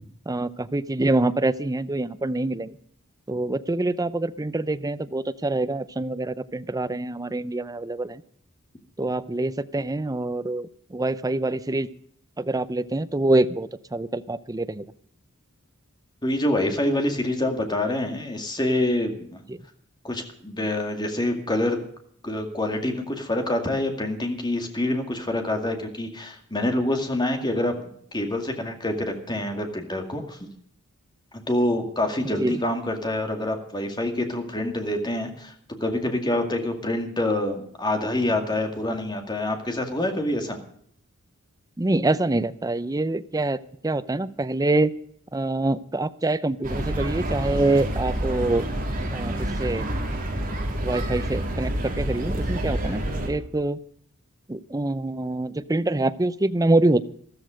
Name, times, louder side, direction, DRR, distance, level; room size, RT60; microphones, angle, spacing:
voice 1, 0.3-2.8 3.3-8.2 9.0-11.9 12.4-14.8 19.5-19.6 32.2-32.6 41.8-44.9 45.3-48.7 49.1-49.9 50.8-53.8 54.5-57.0, right 2 dB, 15° right, 13 dB, 0.6 m, -25 dB
voice 2, 16.2-19.4 20.0-21.8 22.2-30.4 31.3-35.5 35.8-40.6, left 1 dB, 20° left, 4 dB, 2.2 m, -26 dB
sound 1, 46.6-53.3, right 1 dB, 40° right, 3.6 m, -28 dB
13.5 x 13.5 x 5.1 m, 0.64 s
head